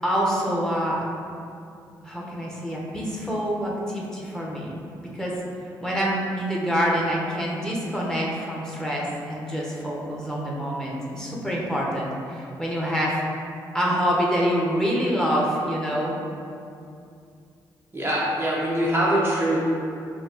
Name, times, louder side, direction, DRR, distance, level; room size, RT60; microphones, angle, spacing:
voice 1, 0.0-1.0 2.0-4.8 5.1-5.3 5.8-13.2 13.7-16.2, equal, 5° left, -4 dB, 1.1 m, -26 dB
voice 2, 17.9-19.6, right 1 dB, 20° right, -6 dB, 0.7 m, -23 dB
5.5 x 2.7 x 2.9 m, 2.5 s
hypercardioid pair, 40°, 11 cm